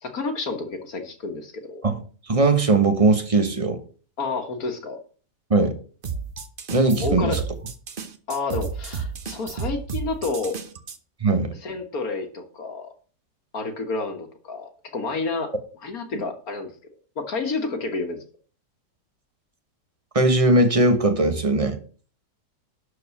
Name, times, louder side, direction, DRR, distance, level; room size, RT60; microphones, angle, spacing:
voice 1, 0.0-1.8 4.2-5.0 7.0-7.4 8.3-10.6 11.6-12.9 13.5-15.5 15.8-16.7 17.2-18.2, left 3 dB, 60° left, 1.8 m, -30 dB
voice 2, 2.3-3.8 5.5-5.7 6.7-7.4 11.2-11.5 20.1-21.8, right 2 dB, 20° right, 1.3 m, -19 dB
sound 1, 6.0-11.0, right 5 dB, 40° right, 0.9 m, -32 dB
12.0 x 4.6 x 7.0 m
omnidirectional pair, 1.8 m